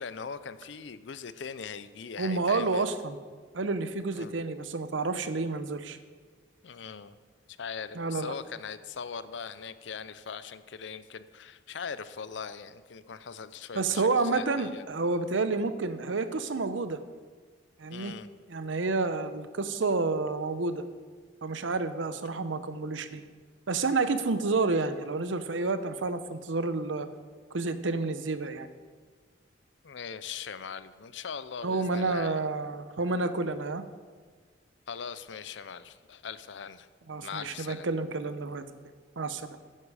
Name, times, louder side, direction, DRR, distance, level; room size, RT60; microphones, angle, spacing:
voice 1, 0.0-2.8 4.2-4.3 6.6-7.1 7.6-14.8 17.9-18.3 29.8-32.4 34.9-36.9 37.2-37.9, left 6 dB, 75° left, 14 dB, 0.5 m, -40 dB
voice 2, 2.2-3.2 3.5-6.0 7.9-8.3 13.7-17.0 17.8-18.1 18.5-20.8 21.4-23.2 23.7-27.1 27.5-28.7 31.6-33.8 37.1-38.6 39.2-39.6, right 3 dB, 90° right, 11 dB, 0.8 m, -29 dB
11.0 x 10.0 x 4.9 m, 1.5 s
head